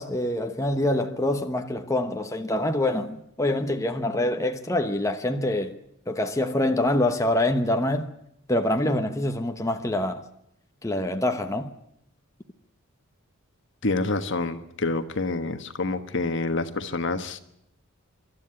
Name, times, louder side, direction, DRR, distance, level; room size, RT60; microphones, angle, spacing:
voice 1, 0.0-5.8 6.1-8.1 8.5-10.2 10.8-11.7, left 1 dB, 15° left, 1.0 m, -25 dB
voice 2, 13.8-17.4, left 3 dB, 55° left, 1.3 m, -27 dB
25.0 x 12.5 x 9.7 m
head